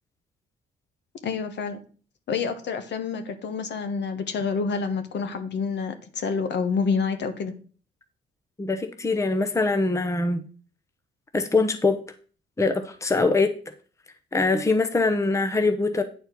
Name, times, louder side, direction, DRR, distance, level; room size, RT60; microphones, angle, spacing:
voice 1, 1.2-1.8 2.3-7.5, left 5 dB, 60° left, 8 dB, 1.4 m, -28 dB
voice 2, 8.6-10.4 11.3-12.0 12.6-13.5 14.3-16.0, left 3 dB, 15° left, 7 dB, 0.9 m, -23 dB
9.2 x 4.3 x 6.0 m, 0.41 s
cardioid pair, 90°, 20 cm